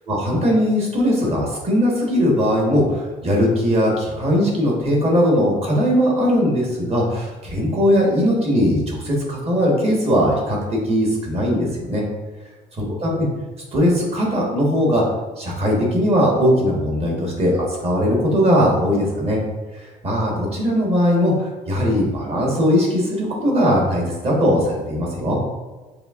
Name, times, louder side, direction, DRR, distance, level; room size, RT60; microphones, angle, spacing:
voice 1, 0.1-12.0 13.0-13.3 13.7-15.0 15.4-19.4 19.7-25.4, equal, 35° right, -2 dB, 1.3 m, -19 dB
6.3 x 2.7 x 2.5 m, 1.2 s
cardioid pair, 110°, 17 cm